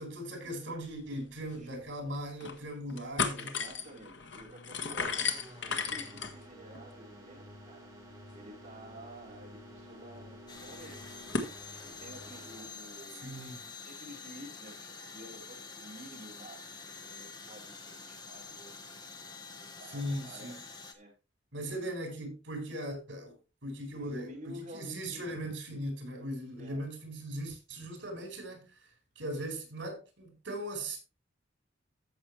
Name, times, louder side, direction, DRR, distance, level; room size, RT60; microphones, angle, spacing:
voice 1, 0.0-3.6 13.2-13.6 19.9-20.6 21.5-23.3 23.6-28.9 29.2-31.0, right 1 dB, 80° right, 4.6 m, -39 dB
sound 1, 1.2-1.3 1.5-1.6 2.1-2.6 2.9-11.5, left 5 dB, 70° left, 1.4 m, -38 dB
voice 2, 1.6-1.9 2.8-5.2 5.6-11.0 11.8-13.5 13.8-19.2 19.6-20.6 20.9-21.1 21.7-21.9 23.9-25.2 26.6-26.9, equal, 40° right, 4.2 m, -51 dB
sound 2, 5.0-12.7, right 1 dB, 15° right, 3.7 m, -52 dB
sound 3, 10.5-20.9, left 4 dB, 20° left, 1.2 m, -47 dB
14.5 x 6.1 x 3.2 m
head